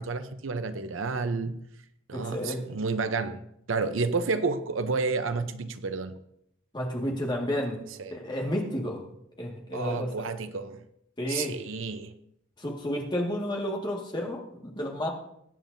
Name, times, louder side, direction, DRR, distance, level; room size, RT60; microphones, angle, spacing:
voice 1, 0.0-1.6 2.1-3.4 3.7-6.2 8.0-8.2 9.7-10.8 11.3-12.1, right 4 dB, 75° right, 0.7 m, -30 dB
voice 2, 2.1-2.6 6.7-9.0 9.4-10.3 11.2-11.6 12.6-15.1, equal, 25° left, 1.9 m, -31 dB
21.5 x 9.3 x 2.7 m
head